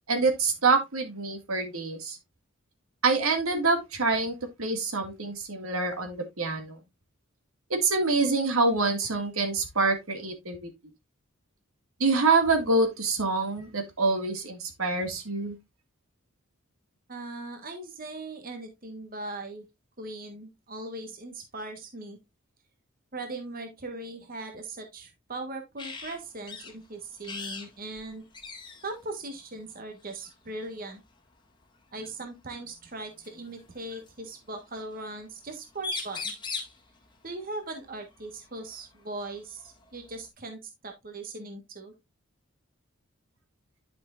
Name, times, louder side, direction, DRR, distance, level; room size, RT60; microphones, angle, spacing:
voice 1, 0.1-2.2 3.0-6.8 7.7-10.7 12.0-15.6, right 3 dB, 80° right, 2.0 m, -26 dB
voice 2, 17.1-19.6 20.0-22.2 23.1-28.2 28.8-31.0 31.9-36.4 37.2-41.9, right 2 dB, 40° right, 1.4 m, -39 dB
sound 1, 25.8-26.2 26.5-26.7 27.2-27.7 28.0-28.1 28.3-28.9 30.1-30.3 32.0-32.1 33.2-34.1 35.5-35.6 35.8-36.8 38.7-38.8 39.3-40.3, left 3 dB, 20° left, 1.8 m, -38 dB
10.5 x 6.0 x 2.5 m
head